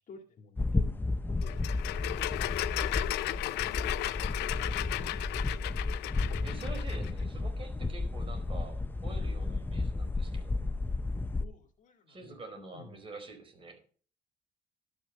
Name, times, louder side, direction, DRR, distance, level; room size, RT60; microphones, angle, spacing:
voice 1, 0.0-1.7 2.0-2.3 3.2-4.7 5.0-5.5 11.4-13.0, left 5 dB, 45° left, 4 dB, 2.0 m, -51 dB
sound 1, 0.6-11.5, left 3 dB, 10° left, 0.6 m, -33 dB
sound 2, 1.4-7.1, left 16 dB, 80° left, 0.5 m, -35 dB
voice 2, 6.4-10.6 12.1-13.8, right 3 dB, 30° right, 4 dB, 4.6 m, -47 dB
11.5 x 6.4 x 6.6 m, 0.43 s
cardioid pair, 110°, 17 cm